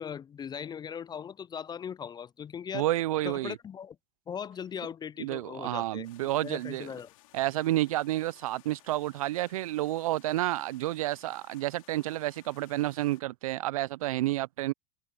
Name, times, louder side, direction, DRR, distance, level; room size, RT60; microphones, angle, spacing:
voice 1, 0.0-2.9 3.2-4.0 4.3-7.1, left 7 dB, 25° left, 0.5 m, -39 dB
voice 2, 2.7-3.6 5.2-6.9 7.3-14.7, right 16 dB, 75° right, 0.9 m, -30 dB
sound 1, 6.0-13.2, left 19 dB, 70° left, 3.2 m, -59 dB
hypercardioid pair, 85°, 18 cm